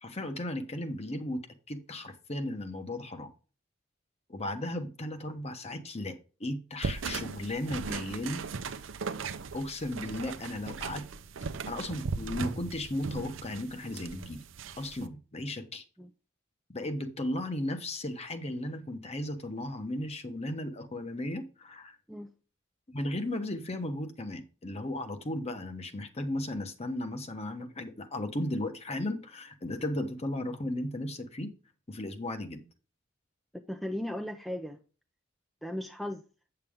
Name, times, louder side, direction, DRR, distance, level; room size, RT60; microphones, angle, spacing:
voice 1, 0.0-3.3 4.3-8.4 9.5-11.0 11.7-14.4 14.8-15.8 16.7-22.0 22.9-31.5 31.9-32.6, left 1 dB, 35° left, 1.0 m, -35 dB
sound 1, 6.8-15.0, right 4 dB, 70° right, 0.6 m, -38 dB
voice 2, 33.7-34.8 35.6-36.2, left 1 dB, ahead, 0.5 m, -36 dB
8.1 x 6.8 x 3.6 m
head